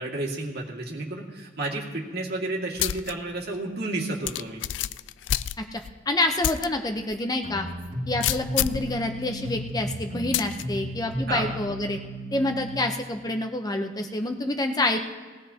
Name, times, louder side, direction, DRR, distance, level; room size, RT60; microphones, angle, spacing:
voice 1, 0.0-4.7 11.3-11.5, right 2 dB, 55° right, 0 dB, 2.1 m, -31 dB
sound 1, 2.8-3.1 3.5-3.6 4.3-5.9 6.4-6.7 7.1-7.2 8.2-8.9 10.3-10.6, left 12 dB, 65° left, 0.3 m, -27 dB
voice 2, 6.1-7.7 8.1-12.0 12.3-15.0, left 2 dB, 20° left, 4 dB, 0.7 m, -27 dB
sound 2, 7.4-12.7, equal, 30° right, 2.2 m, -35 dB
19.0 x 16.5 x 2.8 m, 1.5 s
head